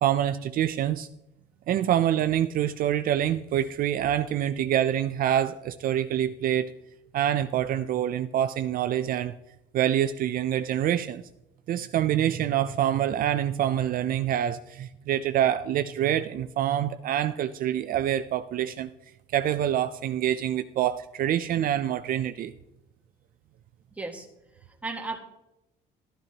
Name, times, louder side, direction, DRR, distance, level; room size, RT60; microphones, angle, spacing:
voice 1, 0.0-1.1 1.7-6.7 7.1-9.3 9.7-11.2 11.7-18.9 19.3-22.5, right 11 dB, 60° right, 11 dB, 0.5 m, -26 dB
voice 2, 23.9-24.3 24.6-25.2, right 3 dB, 10° right, 2 dB, 1.7 m, -35 dB
12.5 x 12.0 x 2.9 m, 0.89 s
cardioid pair, 110°, 17 cm